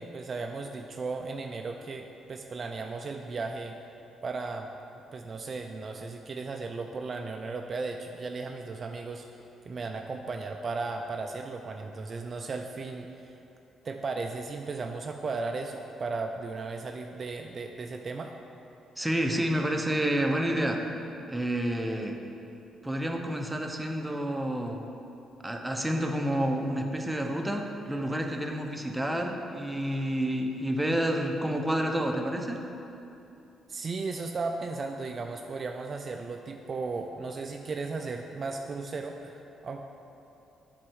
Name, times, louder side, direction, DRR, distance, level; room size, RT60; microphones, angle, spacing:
voice 1, 0.0-3.7 4.2-4.7 5.1-13.3 13.8-18.3 33.7-39.8, right 3 dB, 40° right, 4 dB, 0.4 m, -36 dB
voice 2, 19.0-20.8 21.3-22.2 22.8-24.9 25.4-32.6, right 1 dB, 5° right, 2 dB, 0.8 m, -29 dB
7.6 x 4.4 x 6.3 m, 2.8 s
cardioid pair, 90°, 0 cm